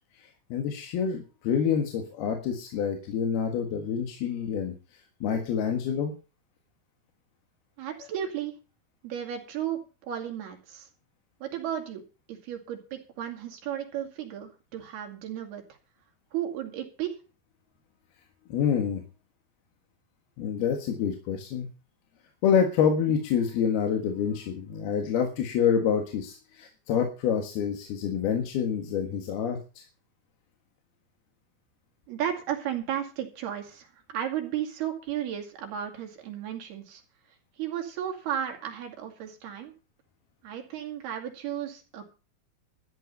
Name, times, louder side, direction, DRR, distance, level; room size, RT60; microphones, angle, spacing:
voice 1, 0.2-4.7 5.2-6.1 8.0-8.1 18.5-19.0 20.4-21.7 22.4-29.8, left 7 dB, 80° left, 3 dB, 3.6 m, -27 dB
voice 2, 7.8-8.5 9.0-9.8 10.1-10.9 11.4-12.0 12.3-15.6 16.3-17.1 32.1-37.0 37.6-39.7 40.4-42.0, right 10 dB, 85° right, 3 dB, 4.4 m, -34 dB
13.5 x 9.8 x 5.5 m, 0.33 s
omnidirectional pair, 4.4 m